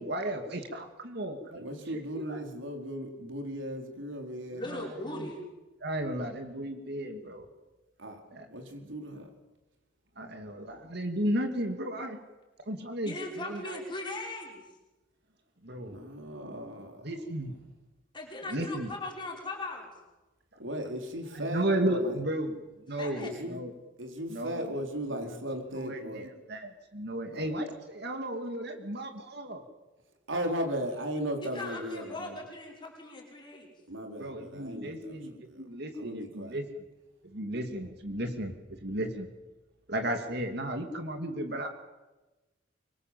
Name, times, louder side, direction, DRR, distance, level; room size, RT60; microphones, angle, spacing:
voice 1, 0.0-2.4 4.7-5.3 5.8-7.5 8.3-8.5 10.2-12.2 12.6-13.8 15.6-16.0 17.0-17.5 18.5-18.9 21.3-22.6 22.9-23.7 24.3-24.7 25.2-25.4 25.7-29.6 34.2-36.6 37.2-39.3 39.9-41.7, right 1 dB, 55° right, 5 dB, 2.6 m, -34 dB
voice 2, 1.5-4.6 8.0-8.2 8.5-9.3 15.9-17.0 20.6-22.2 23.2-23.6 24.0-26.3 27.3-27.5 30.3-32.4 33.9-35.6 35.9-36.6, equal, 80° right, 3 dB, 4.5 m, -37 dB
voice 3, 4.5-5.4 13.0-14.6 18.1-19.9 23.0-23.3 31.4-33.7, left 2 dB, 25° left, -1 dB, 5.9 m, -39 dB
24.5 x 23.5 x 7.7 m, 1.1 s
head